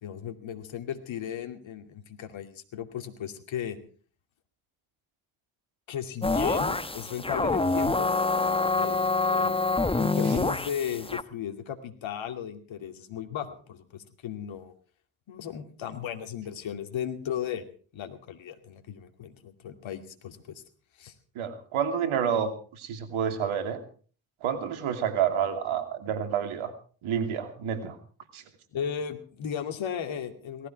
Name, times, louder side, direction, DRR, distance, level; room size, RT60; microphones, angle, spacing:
voice 1, 0.0-3.8 5.9-8.1 8.7-9.6 9.9-14.7 15.3-17.6 17.9-20.6 21.0-21.1 28.7-30.7, left 9 dB, 65° left, 6 dB, 2.6 m, -35 dB
sound 1, 6.2-11.2, left 3 dB, 10° left, 1.0 m, -26 dB
voice 2, 21.3-23.8 24.4-26.7 27.0-28.0 28.3-28.4, right 8 dB, 70° right, 8 dB, 2.8 m, -29 dB
18.5 x 14.5 x 4.7 m, 0.42 s
hypercardioid pair, 45°, 50 cm